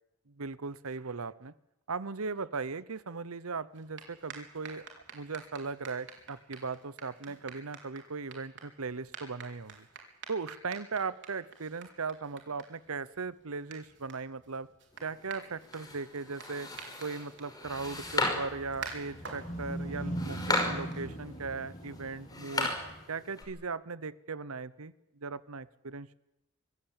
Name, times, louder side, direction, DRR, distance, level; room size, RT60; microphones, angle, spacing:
voice 1, 0.4-1.5 1.9-4.8 5.1-9.9 10.3-14.7 15.0-16.7 17.0-22.7 23.1-24.9 25.2-26.2, right 4 dB, 80° right, 17 dB, 0.9 m, -38 dB
sound 1, 3.7-21.5, right 5 dB, 60° right, 4.3 m, -50 dB
sound 2, 14.9-23.4, left 2 dB, 20° left, 5.6 m, -37 dB
sound 3, 17.6-23.0, right 1 dB, 35° left, 5.2 m, -41 dB
24.5 x 16.0 x 8.9 m, 0.92 s
head